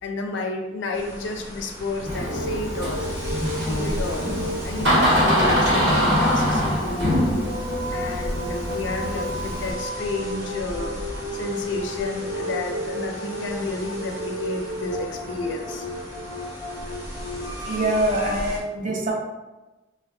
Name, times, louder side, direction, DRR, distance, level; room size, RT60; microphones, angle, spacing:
voice 1, 0.0-3.1 3.6-7.1 7.9-11.0 11.3-15.9, left 2 dB, 70° left, 3 dB, 0.4 m, -31 dB
sound 1, 0.9-18.6, equal, 20° right, 0.9 m, -37 dB
sound 2, 2.0-18.3, equal, 15° left, 0.6 m, -33 dB
Door, 2.1-9.7, equal, 80° right, 1.0 m, -23 dB
voice 2, 17.5-19.1, right 1 dB, 40° right, -1 dB, 0.5 m, -24 dB
2.2 x 2.1 x 3.4 m, 1.1 s
head